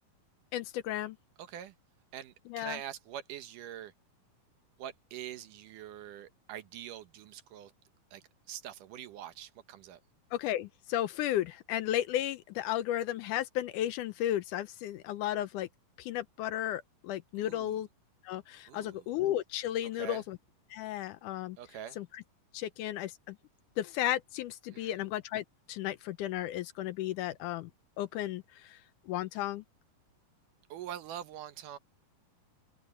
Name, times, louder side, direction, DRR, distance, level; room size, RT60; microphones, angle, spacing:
voice 1, 0.5-1.2 2.5-2.8 10.3-15.7 16.0-17.9 18.2-20.4 20.7-21.6 22.0-22.2 22.5-23.4 23.8-27.7 28.0-28.8 29.1-29.6, left 12 dB, 75° left, 2.1 m, -34 dB
voice 2, 1.4-1.7 2.1-3.9 4.8-7.7 8.1-10.0 17.4-17.8 18.7-19.0 20.0-20.2 21.6-22.0 24.7-25.0 30.7-31.8, right 10 dB, 75° right, 2.5 m, -44 dB
open air
omnidirectional pair, 3.9 m